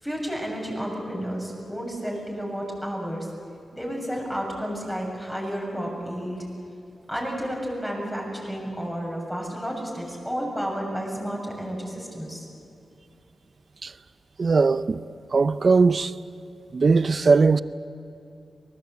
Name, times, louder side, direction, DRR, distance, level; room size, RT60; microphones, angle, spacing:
voice 1, 0.0-3.3 3.7-6.5 7.1-12.5, equal, 5° left, 7.3 m, -31 dB
voice 2, 14.4-15.0 15.3-16.1 16.7-17.6, right 4 dB, 50° right, 0.7 m, -19 dB
24.5 x 19.5 x 8.3 m
cardioid pair, 80°, 0 cm